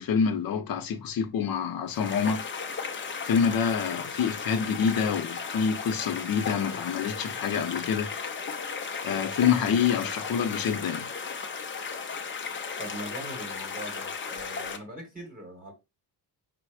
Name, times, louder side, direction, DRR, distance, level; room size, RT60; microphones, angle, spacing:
voice 1, 0.0-2.4 3.3-8.1 9.0-11.1, left 6 dB, 55° left, 0.8 m, -27 dB
sound 1, 1.9-14.8, left 5 dB, 30° left, 0.5 m, -35 dB
voice 2, 12.8-15.7, equal, 20° right, 1.1 m, -41 dB
5.2 x 2.1 x 4.8 m
cardioid pair, 180°, 42 cm